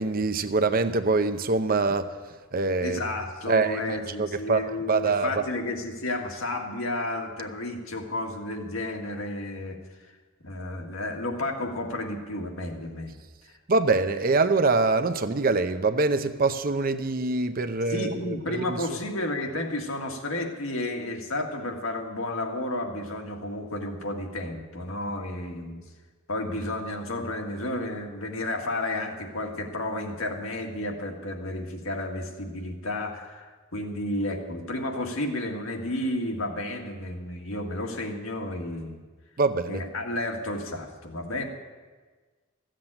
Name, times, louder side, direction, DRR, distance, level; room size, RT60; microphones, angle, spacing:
voice 1, 0.0-3.0 3.5-5.4 13.7-18.8 39.4-39.8, right 3 dB, 45° right, 10 dB, 0.7 m, -25 dB
voice 2, 2.8-9.8 10.4-13.2 17.9-25.8 26.3-39.0 39.7-41.5, left 1 dB, 85° left, 2 dB, 1.8 m, -32 dB
15.0 x 7.6 x 8.8 m, 1.4 s
head